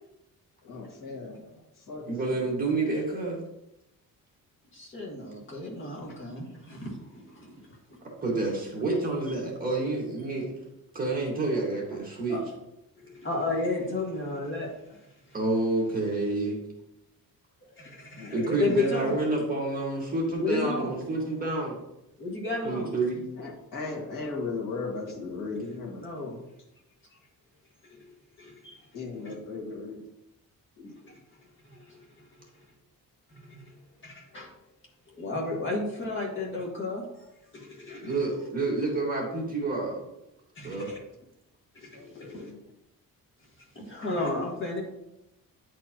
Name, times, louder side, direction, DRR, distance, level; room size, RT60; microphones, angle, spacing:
voice 1, 0.6-2.5 18.2-18.4 23.4-26.3 28.9-30.0 30.8-30.9 40.9-41.0 41.9-42.6, left 3 dB, 60° left, -3 dB, 1.9 m, -37 dB
voice 2, 2.1-3.4 8.2-10.5 10.9-12.4 15.3-16.6 18.3-21.7 22.6-23.2 38.0-40.0 40.6-40.9, right 2 dB, 25° right, -3 dB, 1.7 m, -28 dB
voice 3, 4.7-7.6 12.3-12.4 13.0-14.7 17.8-19.2 20.4-20.9 22.2-22.9 26.0-26.4 27.8-28.1 28.4-28.8 29.3-29.4 31.1-31.2 31.7-32.0 33.3-33.7 34.0-34.5 35.1-37.0 37.5-38.2 40.6-41.0 41.8-42.5 43.8-44.8, left 3 dB, 35° left, -2 dB, 1.7 m, -33 dB
9.6 x 4.4 x 2.9 m, 0.87 s
wide cardioid pair, 170°, 36 cm